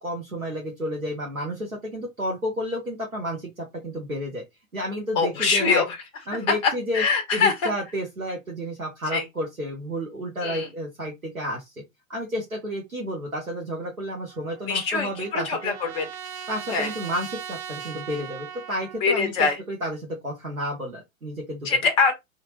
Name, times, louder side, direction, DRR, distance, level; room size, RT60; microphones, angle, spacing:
voice 1, 0.0-4.4 4.7-5.8 6.3-7.0 7.3-11.7 12.1-15.7 16.5-21.7, equal, 90° right, 1.0 m, -31 dB
voice 2, 5.2-5.8 6.6-7.7 9.1-9.2 10.4-10.7 14.7-16.0 16.7-16.9 19.0-19.6 21.6-22.1, left 5 dB, 15° left, 0.4 m, -23 dB
Trumpet, 14.3-19.0, right 8 dB, 70° right, 0.8 m, -39 dB
2.9 x 2.4 x 2.9 m
figure-of-eight pair, 105°, 41 cm